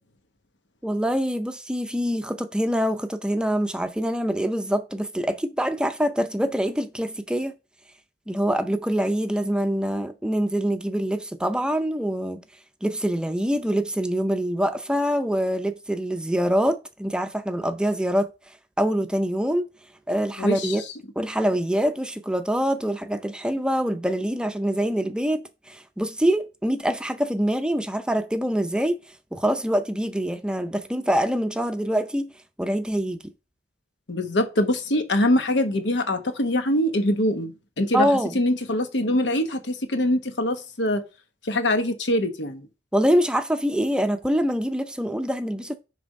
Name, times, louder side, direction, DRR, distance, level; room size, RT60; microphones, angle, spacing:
voice 1, 0.8-7.5 8.3-12.4 12.8-19.7 20.1-20.8 21.2-29.0 29.3-32.3 32.6-33.2 37.9-38.4 42.9-45.7, equal, 5° right, 0.5 m, -25 dB
voice 2, 20.4-20.8 34.1-38.1 38.3-41.0 41.4-42.7, left 1 dB, 90° left, 1.1 m, -23 dB
7.5 x 3.5 x 5.2 m
head